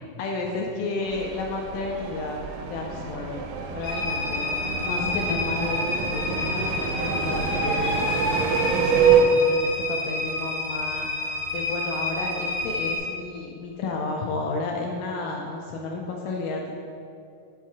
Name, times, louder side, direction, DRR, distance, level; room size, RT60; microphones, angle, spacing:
voice 1, 0.2-2.4 2.7-3.5 3.7-4.4 4.8-8.0 8.6-11.1 11.5-16.7, left 3 dB, 80° left, 0 dB, 2.0 m, -31 dB
sound 1, 1.0-9.2, right 7 dB, 85° right, 1.7 m, -26 dB
sound 2, 3.8-13.0, left 2 dB, 40° left, 1.3 m, -29 dB
5.6 x 4.5 x 4.6 m, 2.5 s
omnidirectional pair, 4.1 m